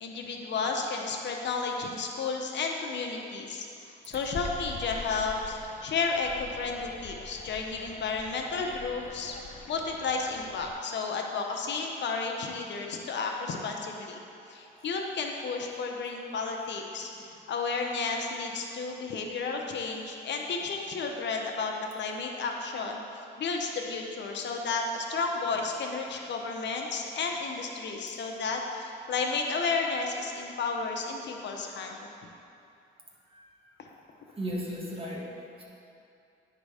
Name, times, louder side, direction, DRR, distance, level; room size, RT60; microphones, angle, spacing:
voice 1, 0.0-14.2 14.5-23.0 23.4-32.0 33.8-33.9, left 4 dB, 65° left, 1 dB, 0.8 m, -32 dB
sound 1, 4.1-10.7, left 4 dB, 35° left, 0.5 m, -44 dB
voice 2, 34.4-35.6, equal, 30° right, -4 dB, 1.7 m, -36 dB
10.0 x 3.9 x 4.9 m, 2.7 s
cardioid pair, 90°, 20 cm